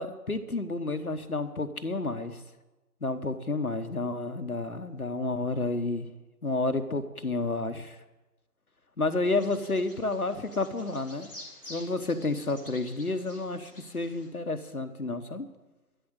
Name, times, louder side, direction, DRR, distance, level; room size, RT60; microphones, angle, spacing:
voice 1, 0.0-2.4 3.0-6.1 6.4-8.0 9.0-11.3 11.7-15.5, left 2 dB, 65° left, 9 dB, 1.1 m, -30 dB
Bird vocalization bird call bird song, 9.2-14.3, left 1 dB, 35° left, 2.3 m, -49 dB
13.0 x 7.4 x 8.1 m, 1.1 s
figure-of-eight pair, 175°, 48 cm